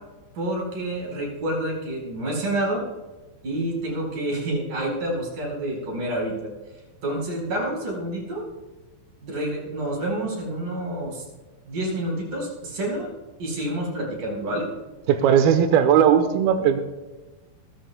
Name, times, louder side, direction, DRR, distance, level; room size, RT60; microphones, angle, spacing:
voice 1, 0.3-2.8 3.4-6.5 7.0-8.4 9.2-11.2 11.7-13.1 13.4-14.7, right 1 dB, 45° right, -1 dB, 6.0 m, -28 dB
voice 2, 15.1-16.8, right 8 dB, 80° right, 7 dB, 2.2 m, -18 dB
29.5 x 13.5 x 2.3 m, 1.2 s
omnidirectional pair, 5.6 m